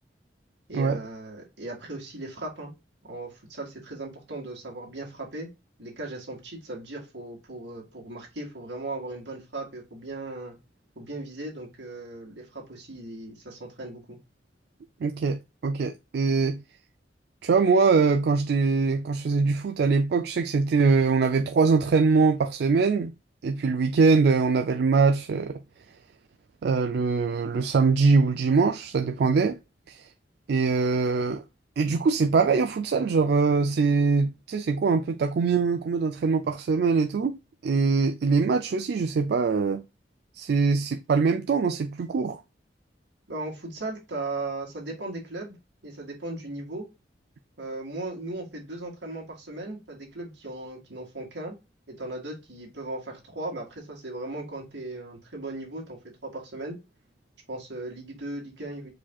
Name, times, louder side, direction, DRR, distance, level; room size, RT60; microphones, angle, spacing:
voice 1, 0.7-2.7 3.1-5.5 5.8-10.6 11.0-14.2 43.3-45.6 45.8-46.9 47.6-51.5 51.9-56.8 57.5-58.9, right 2 dB, 80° right, 2.1 m, -37 dB
voice 2, 15.0-16.6 17.4-23.1 23.4-25.6 26.6-29.6 29.9-30.1 30.5-31.4 31.8-39.8 40.4-42.4, right 4 dB, 65° right, 0.4 m, -23 dB
4.9 x 4.2 x 2.3 m
head